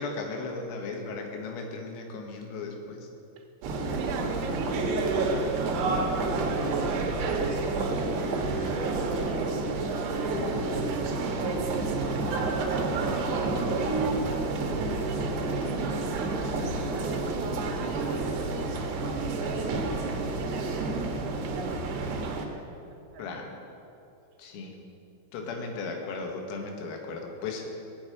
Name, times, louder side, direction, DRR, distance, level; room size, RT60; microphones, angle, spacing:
voice 1, 0.0-3.1 23.2-23.6 24.4-24.8 25.3-27.7, left 3 dB, 90° left, 2 dB, 4.5 m, -36 dB
sound 1, 3.6-22.5, right 3 dB, 65° right, 3.3 m, -29 dB
voice 2, 3.8-18.7 19.3-23.3, right 5 dB, 85° right, 2 dB, 4.0 m, -41 dB
18.5 x 7.3 x 9.1 m, 2.7 s
omnidirectional pair, 5.9 m